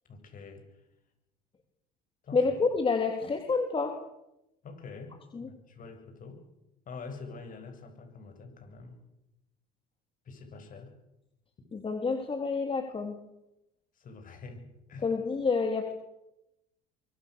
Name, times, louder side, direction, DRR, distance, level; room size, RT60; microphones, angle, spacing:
voice 1, 0.1-0.8 2.2-2.5 4.6-6.4 6.9-9.0 10.2-10.9 13.9-15.1, left 4 dB, 45° left, 6 dB, 7.9 m, -46 dB
voice 2, 2.3-3.9 5.3-5.5 11.7-13.2 15.0-15.9, left 4 dB, 30° left, 4 dB, 3.7 m, -28 dB
24.0 x 24.0 x 6.8 m, 0.89 s
supercardioid pair, 85°, 19 cm